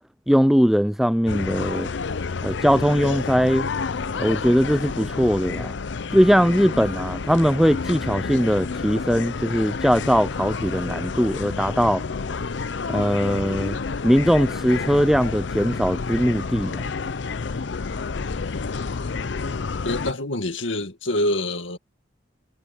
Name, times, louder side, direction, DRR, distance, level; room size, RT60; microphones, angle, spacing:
voice 1, 0.3-1.9 2.4-3.7 4.2-5.8 6.1-12.0 12.9-13.8 14.0-16.8, equal, ahead, 0.4 m, -20 dB
sound 1, 1.3-20.1, left 4 dB, 70° left, 0.6 m, -29 dB
voice 2, 19.8-21.8, left 1 dB, 85° left, 2.2 m, -26 dB
head